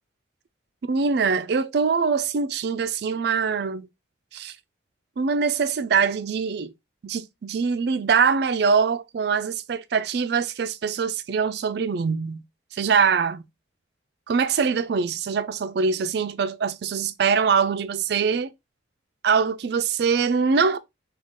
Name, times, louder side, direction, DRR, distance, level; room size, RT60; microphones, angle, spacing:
voice 1, 0.8-3.9 4.3-4.6 5.2-6.7 7.0-12.4 12.7-13.4 14.3-18.5 19.2-20.8, right 5 dB, 55° right, 0.3 m, -23 dB
3.7 x 2.3 x 3.5 m
head